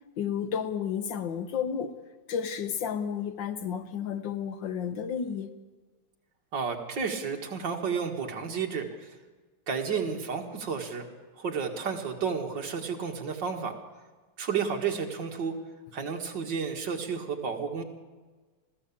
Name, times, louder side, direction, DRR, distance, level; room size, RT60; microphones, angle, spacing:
voice 1, 0.2-2.0 2.3-5.5, left 7 dB, 65° left, 1.7 m, -32 dB
voice 2, 6.5-8.9 9.7-11.0 11.4-13.7 14.4-15.5 15.9-17.8, right 6 dB, 55° right, 2.5 m, -31 dB
21.0 x 14.5 x 8.6 m
omnidirectional pair, 2.4 m